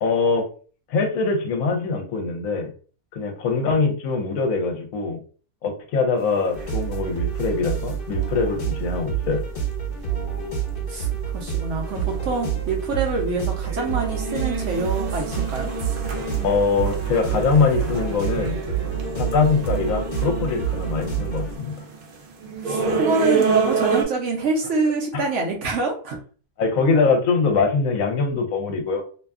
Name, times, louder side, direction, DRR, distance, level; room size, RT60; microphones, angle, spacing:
voice 1, 0.0-0.5 0.9-2.7 3.1-5.2 5.6-9.4 16.4-18.6 19.2-21.7 25.1-25.2 26.6-29.0, left 4 dB, 70° left, 3 dB, 1.0 m, -23 dB
sound 1, 6.3-7.1 7.4-7.5 7.9-8.0 8.4-8.5 8.7-8.8 9.2-9.3 9.9-10.0 10.3-10.6 11.1-11.2 11.8-12.2 12.5-13.0 13.4-13.5 13.7-24.0, right 4 dB, 80° right, 0.4 m, -28 dB
sound 2, 6.5-21.6, right 8 dB, 40° left, 1.1 m, -28 dB
voice 2, 10.9-15.7 22.6-26.2, right 3 dB, 65° right, 0 dB, 0.8 m, -26 dB
2.7 x 2.3 x 2.3 m, 0.39 s
omnidirectional pair, 1.6 m